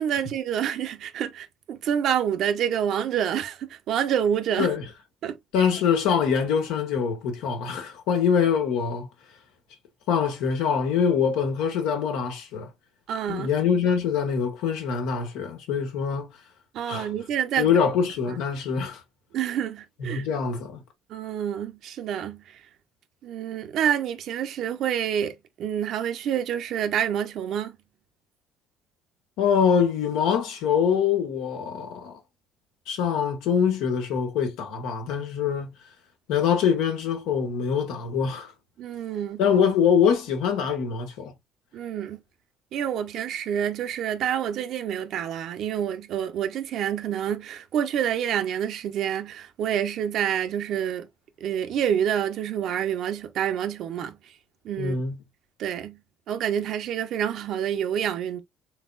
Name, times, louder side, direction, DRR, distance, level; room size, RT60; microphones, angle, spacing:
voice 1, 0.0-4.7 5.2-5.4 13.1-13.5 16.7-17.7 18.3-18.4 19.3-20.3 21.1-22.6 23.2-27.8 38.8-39.4 41.7-42.2 42.7-51.1 51.4-54.2 54.6-55.0 55.6-56.0 56.3-58.4, right 9 dB, 65° right, 0.8 m, -27 dB
voice 2, 5.5-9.1 10.1-12.7 13.3-16.3 16.9-17.1 17.6-19.0 20.0-20.8 29.4-32.2 32.9-35.8 36.3-38.5 39.4-41.3 54.8-55.2, left 7 dB, 80° left, 1.4 m, -24 dB
4.1 x 3.4 x 2.5 m
supercardioid pair, 90°, 0 cm